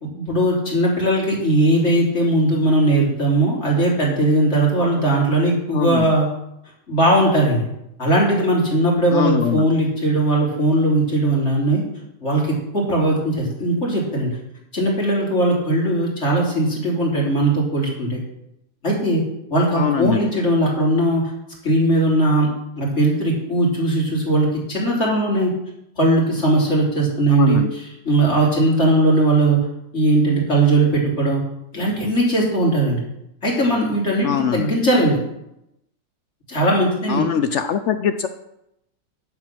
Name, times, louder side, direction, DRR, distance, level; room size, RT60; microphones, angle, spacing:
voice 1, 0.0-6.3 6.9-7.7 8.0-11.8 12.2-14.3 14.7-18.2 18.8-19.2 19.5-21.2 21.6-22.5 22.8-25.5 26.0-29.6 29.9-31.4 31.7-33.0 33.4-35.2 36.5-37.3, right 1 dB, 40° left, -4 dB, 3.7 m, -19 dB
voice 2, 5.7-6.1 9.1-9.7 19.8-20.2 27.3-27.7 34.2-34.7 37.1-38.3, left 8 dB, 80° left, 10 dB, 0.6 m, -22 dB
10.5 x 7.9 x 6.0 m, 0.84 s
omnidirectional pair, 1.8 m